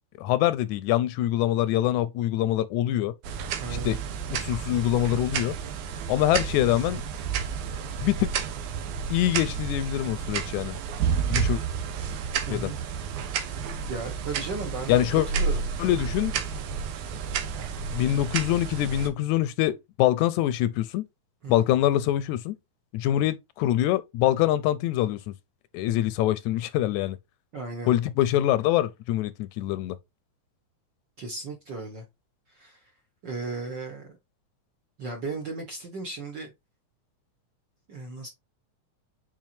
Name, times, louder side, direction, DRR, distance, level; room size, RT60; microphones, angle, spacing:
voice 1, 0.2-3.1 3.7-4.0 4.3-5.6 6.1-7.0 8.0-8.3 9.1-10.8 11.3-11.6 12.5-12.7 14.9-15.3 15.8-16.3 17.9-21.1 21.5-22.6 22.9-25.3 25.7-27.2 27.9-30.0, left 13 dB, 80° left, 1.8 m, -24 dB
sound 1, 3.2-19.1, right 6 dB, 85° right, 2.4 m, -31 dB
voice 2, 3.6-4.0 12.4-12.8 13.9-15.6 21.4-21.7 27.5-27.9 31.2-32.0 32.5-32.9 33.2-34.1 35.0-36.5 37.9-38.3, right 3 dB, 55° right, 1.3 m, -36 dB
7.4 x 4.7 x 2.7 m
omnidirectional pair, 3.5 m